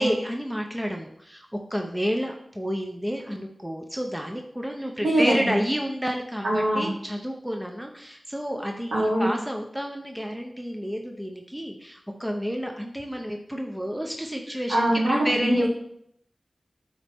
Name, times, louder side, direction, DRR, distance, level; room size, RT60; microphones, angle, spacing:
voice 1, 0.0-14.9 15.2-15.6, equal, 5° right, 2 dB, 0.8 m, -30 dB
voice 2, 5.0-5.6 6.4-6.9 8.9-9.3 14.7-15.7, right 1 dB, 90° right, -7 dB, 2.0 m, -23 dB
10.0 x 4.3 x 3.6 m, 0.70 s
wide cardioid pair, 60°, 0 cm